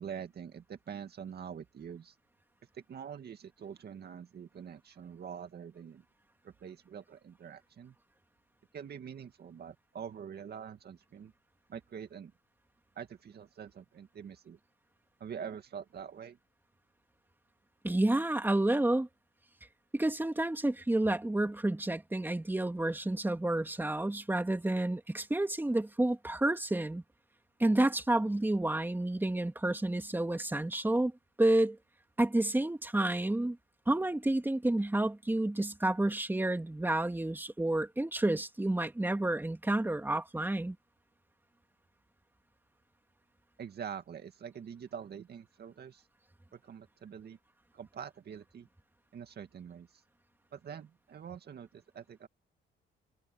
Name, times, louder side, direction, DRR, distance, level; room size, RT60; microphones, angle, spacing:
voice 1, 0.0-2.2 2.7-6.1 6.4-7.9 8.7-11.3 11.7-12.3 13.0-14.6 15.2-16.4 43.6-46.1 46.5-47.4 47.7-48.7 49.1-50.0 50.5-52.3, right 8 dB, 55° right, 2.1 m, -45 dB
voice 2, 17.8-19.1 19.9-27.0 27.6-31.1 31.4-31.8 32.2-33.6 33.9-40.8, right 1 dB, 10° right, 2.9 m, -30 dB
cardioid pair, 90°, 20 cm